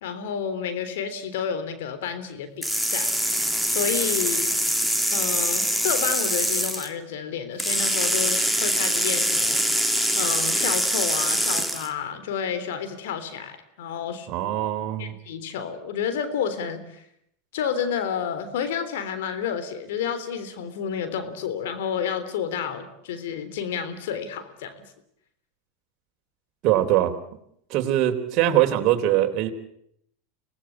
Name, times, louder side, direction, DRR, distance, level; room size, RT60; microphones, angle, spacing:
voice 1, 0.0-3.1 3.7-4.6 5.1-14.3 15.0-17.0 17.5-24.8, left 7 dB, 75° left, 10 dB, 3.5 m, -30 dB
sound 1, 2.6-6.9 7.6-11.9, equal, ahead, 2.6 m, -24 dB
voice 2, 14.3-15.1 26.6-27.1 27.7-29.5, right 13 dB, 50° right, 4 dB, 3.4 m, -22 dB
25.5 x 19.0 x 8.7 m, 0.73 s
hypercardioid pair, 105°, 0 cm